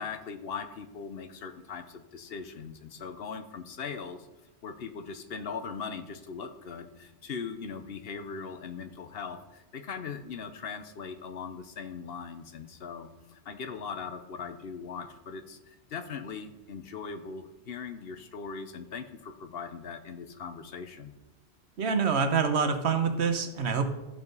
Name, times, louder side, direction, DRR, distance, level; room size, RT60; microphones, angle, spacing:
voice 1, 0.0-4.3 4.6-21.1, left 5 dB, 65° left, 8 dB, 0.9 m, -40 dB
voice 2, 21.8-23.9, right 5 dB, 75° right, 7 dB, 1.2 m, -26 dB
12.5 x 4.9 x 5.4 m, 1.1 s
omnidirectional pair, 1.1 m